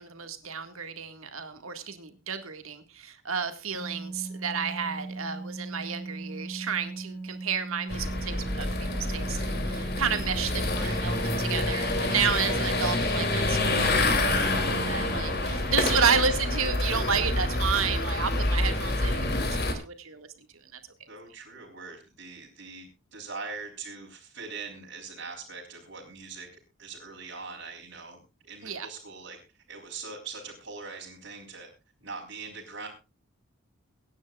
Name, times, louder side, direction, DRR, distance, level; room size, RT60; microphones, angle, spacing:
voice 1, 0.0-20.8 28.6-28.9, right 6 dB, 80° right, 8 dB, 1.9 m, -31 dB
sound 1, 3.7-15.2, right 3 dB, 5° left, 2.8 m, -38 dB
sound 2, 7.9-19.7, left 2 dB, 50° left, 2.9 m, -27 dB
voice 2, 10.7-11.1 15.9-16.1 21.1-26.5 26.8-29.4 29.7-31.7 32.0-32.9, right 4 dB, 60° right, -5 dB, 3.6 m, -42 dB
24.0 x 10.5 x 2.4 m, 0.29 s
head